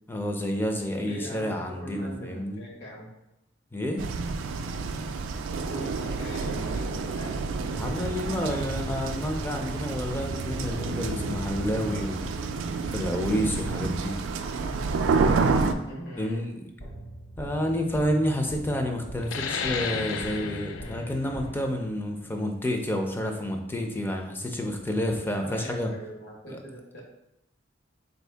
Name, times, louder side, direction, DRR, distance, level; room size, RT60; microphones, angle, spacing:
voice 1, 0.1-2.6 3.7-4.0 7.7-12.2 12.9-14.2 16.2-16.6 17.4-25.9 26.5-26.6, equal, 10° left, 3 dB, 0.4 m, -29 dB
voice 2, 1.0-3.1 5.6-7.3 7.8-8.7 15.8-16.4 25.4-27.0, equal, 60° left, -4 dB, 1.3 m, -41 dB
sound 1, 4.0-15.7, right 4 dB, 80° right, 0.3 m, -29 dB
sound 2, 7.7-12.8 16.8-22.0, equal, 45° left, 0.9 m, -41 dB
sound 3, 19.2-24.4, left 5 dB, 85° left, 0.3 m, -35 dB
4.3 x 2.7 x 3.3 m, 0.86 s
head